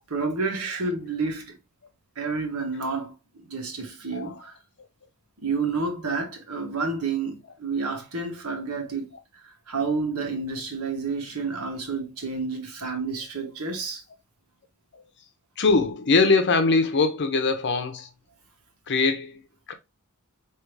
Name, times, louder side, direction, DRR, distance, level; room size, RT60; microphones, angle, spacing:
voice 1, 0.1-1.6 2.1-4.5 5.4-14.0, right 4 dB, 85° right, 1.4 m, -30 dB
voice 2, 15.6-18.1 18.9-19.4 19.7-19.8, left 3 dB, 55° left, 0.8 m, -22 dB
4.7 x 3.0 x 3.2 m
head